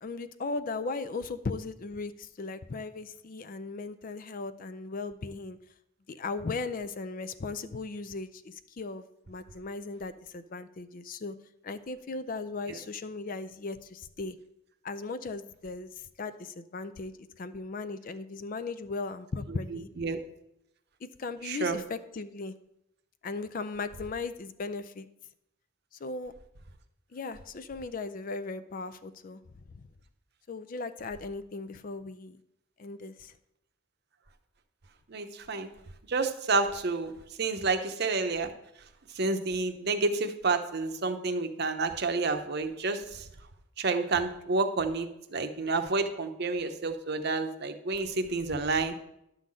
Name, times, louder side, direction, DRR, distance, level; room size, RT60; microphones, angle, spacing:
voice 1, 0.0-5.6 6.1-11.4 11.6-14.4 14.8-19.9 21.0-22.6 23.2-25.1 26.0-26.3 27.1-29.4 29.7-29.8 30.5-32.4 32.8-33.3, left 3 dB, 40° left, 13 dB, 0.4 m, -37 dB
voice 2, 19.7-20.2 21.4-21.8 35.1-35.7 36.1-37.1 37.4-38.5 39.1-43.3 43.8-49.0, right 3 dB, 50° right, 7 dB, 0.8 m, -29 dB
11.5 x 3.9 x 7.5 m, 0.82 s
head